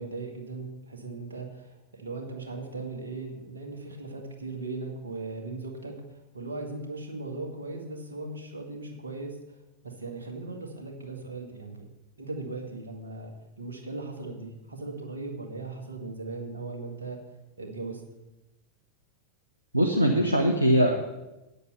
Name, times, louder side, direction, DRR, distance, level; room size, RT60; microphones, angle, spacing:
voice 1, 0.0-6.0 6.3-9.4 9.8-11.9 12.2-13.3 13.6-17.2 17.6-18.0, right 3 dB, 70° right, 1 dB, 2.0 m, -38 dB
voice 2, 19.7-20.9, equal, 85° right, 1 dB, 1.0 m, -21 dB
9.0 x 8.2 x 6.9 m, 1.0 s
figure-of-eight pair, 90°, 0 cm